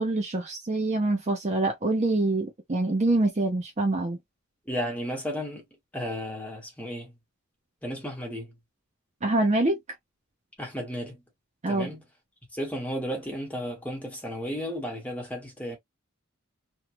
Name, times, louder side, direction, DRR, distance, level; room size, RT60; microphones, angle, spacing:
voice 1, 0.0-4.2 9.2-9.8 11.6-11.9, right 2 dB, 30° right, 0.6 m, -25 dB
voice 2, 4.7-5.6 5.9-7.1 7.8-8.5 10.6-11.2 11.7-12.0 12.5-15.8, equal, 5° left, 1.2 m, -33 dB
2.9 x 2.2 x 2.9 m
head